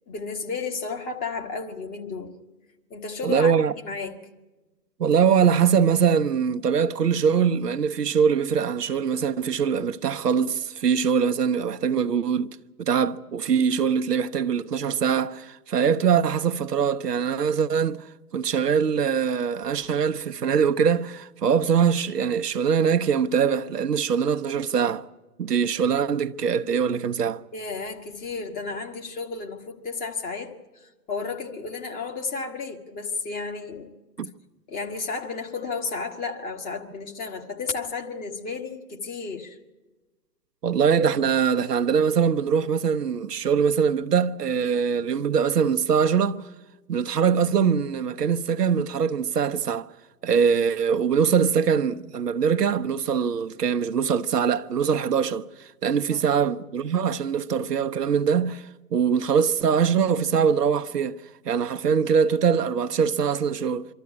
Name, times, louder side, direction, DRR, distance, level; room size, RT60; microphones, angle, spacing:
voice 1, 0.1-2.4 2.9-3.5 3.8-4.2 27.5-33.9 34.7-39.6 56.1-56.4, left 4 dB, 20° left, 1.5 m, -33 dB
voice 2, 3.2-3.7 5.0-12.5 12.8-18.0 18.3-25.0 25.4-27.4 34.2-34.3 40.6-46.5 46.9-49.9 50.2-58.6 58.9-61.2 61.4-63.9, right 7 dB, 75° right, 0.9 m, -22 dB
24.5 x 13.5 x 9.5 m
figure-of-eight pair, 125°, 48 cm